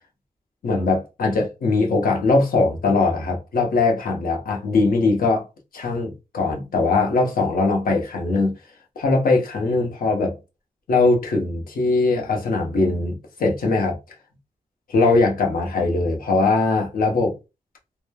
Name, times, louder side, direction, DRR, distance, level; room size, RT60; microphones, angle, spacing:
voice 1, 0.6-5.4 5.7-8.6 9.0-10.4 10.9-14.0 14.9-17.3, left 3 dB, 75° left, 0.9 m, -21 dB
3.0 x 2.1 x 2.2 m
cardioid pair, 80°, 15 cm